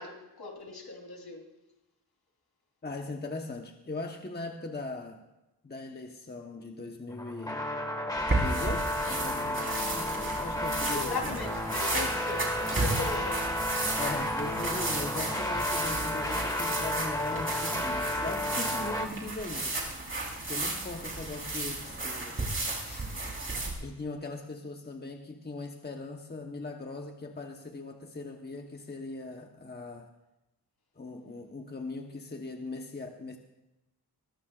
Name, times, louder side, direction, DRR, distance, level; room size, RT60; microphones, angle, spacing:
voice 1, 0.0-1.4 10.9-13.4, left 4 dB, 70° left, 1 dB, 3.6 m, -38 dB
voice 2, 2.8-5.2 5.6-7.7 8.3-11.4 14.0-19.8 20.5-22.4 22.8-23.1 23.8-30.1 31.0-33.4, left 2 dB, 25° left, 2 dB, 1.1 m, -40 dB
sound 1, 7.1-19.1, left 1 dB, 10° left, 1.8 m, -32 dB
sound 2, 8.2-23.7, right 2 dB, 30° right, 4.2 m, -34 dB
22.0 x 21.0 x 2.5 m, 0.95 s
wide cardioid pair, 150°, 40 cm